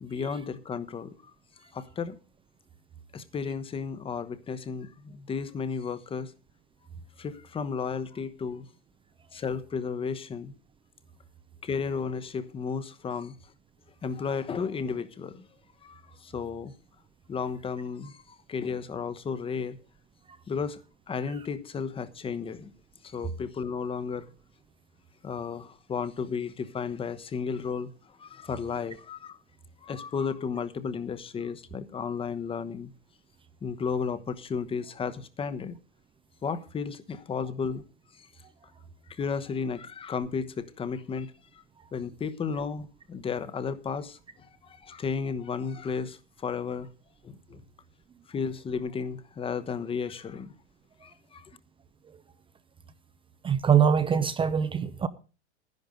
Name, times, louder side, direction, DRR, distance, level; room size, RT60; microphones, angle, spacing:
voice 1, 0.0-1.3 1.7-2.2 3.1-6.3 7.2-8.7 9.3-10.5 11.6-13.4 14.0-15.4 15.8-16.7 17.3-18.2 18.5-19.8 20.5-20.8 21.1-22.7 23.0-24.3 25.2-27.9 28.2-29.4 29.8-32.9 33.6-35.7 36.4-37.8 39.1-41.6 41.9-46.9 47.2-47.6 48.3-50.5 51.0-51.4, left 5 dB, 15° left, 1.1 m, -33 dB
voice 2, 53.4-55.1, right 7 dB, 15° right, 0.6 m, -23 dB
11.0 x 11.0 x 5.2 m
hypercardioid pair, 130°, 34 cm